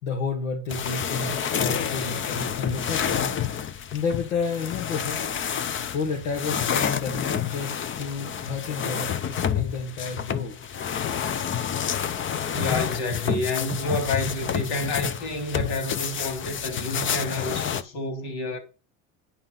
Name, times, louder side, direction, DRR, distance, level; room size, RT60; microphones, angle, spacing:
voice 1, 0.0-3.3 3.9-5.2 5.9-10.5, left 4 dB, 80° left, 2.4 m, -31 dB
sound 1, 0.7-17.8, left 8 dB, 30° left, 0.7 m, -29 dB
voice 2, 12.5-18.6, left 2 dB, 65° left, 3.5 m, -29 dB
10.0 x 5.5 x 5.5 m
supercardioid pair, 100°, 42 cm